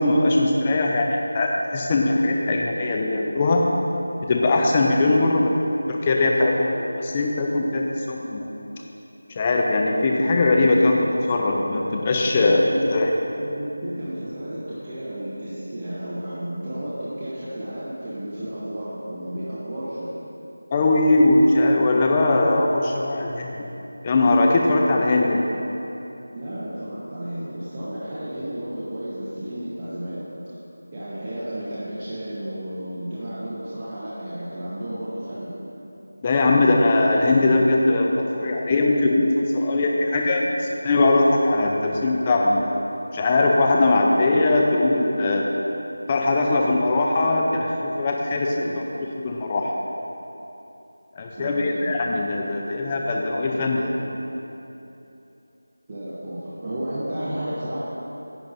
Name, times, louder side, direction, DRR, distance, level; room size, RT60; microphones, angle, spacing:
voice 1, 0.0-3.6 4.3-5.6 5.9-8.5 9.3-12.6 12.9-13.1 20.7-23.6 24.0-25.4 36.2-40.4 40.8-42.7 43.1-45.4 46.1-48.5 49.2-49.7 51.2-54.2, left 2 dB, 20° left, 0 dB, 0.6 m, -20 dB
voice 2, 12.3-12.9 13.4-20.1 26.3-30.3 30.9-35.5 48.5-48.8 51.4-51.9 55.9-57.8, right 1 dB, 25° right, -11 dB, 1.2 m, -32 dB
11.0 x 8.6 x 2.7 m, 3.0 s
figure-of-eight pair, 170°, 0 cm